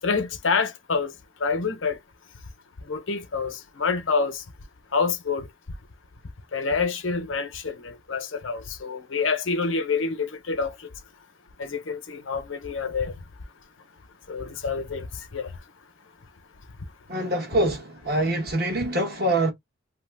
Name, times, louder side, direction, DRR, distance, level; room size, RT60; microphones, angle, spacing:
voice 1, 0.0-1.1 1.4-2.0 2.9-4.4 4.9-5.5 6.5-10.7 11.6-13.1 14.3-15.1 15.3-15.5, left 4 dB, 80° left, 0.8 m, -27 dB
voice 2, 17.1-19.5, right 1 dB, 50° right, 1.2 m, -24 dB
2.9 x 2.1 x 3.4 m
head